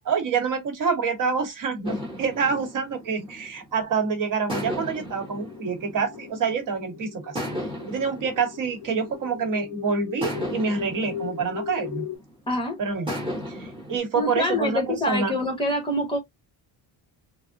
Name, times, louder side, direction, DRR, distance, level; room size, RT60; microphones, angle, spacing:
voice 1, 0.0-7.3 7.9-12.0 12.8-13.2 13.6-15.3, right 5 dB, 55° right, 1.1 m, -27 dB
sound 1, 1.8-3.9 4.5-6.7 7.3-9.6 10.2-12.4 13.1-14.0, equal, 15° right, 1.4 m, -35 dB
sound 2, 5.2-12.2, left 9 dB, 50° left, 0.6 m, -38 dB
voice 2, 12.5-12.8 14.1-16.2, left 1 dB, 15° left, 0.9 m, -25 dB
3.5 x 2.0 x 2.5 m
cardioid pair, 170°, 39 cm